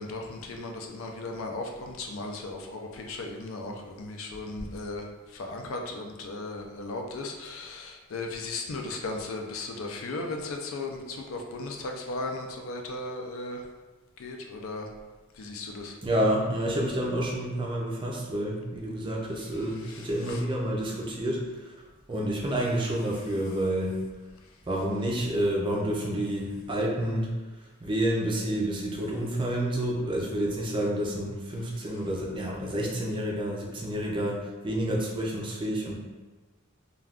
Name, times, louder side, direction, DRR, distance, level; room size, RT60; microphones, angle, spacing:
voice 1, 0.0-5.0 5.3-13.6 14.2-14.9 15.4-16.0 19.9-20.0 20.3-20.4, left 2 dB, 65° left, 2 dB, 0.4 m, -36 dB
voice 2, 16.0-21.7 22.1-24.0 24.7-27.3 27.8-35.9, right 1 dB, 25° right, -2 dB, 0.4 m, -29 dB
2.4 x 2.3 x 3.4 m, 1.2 s
head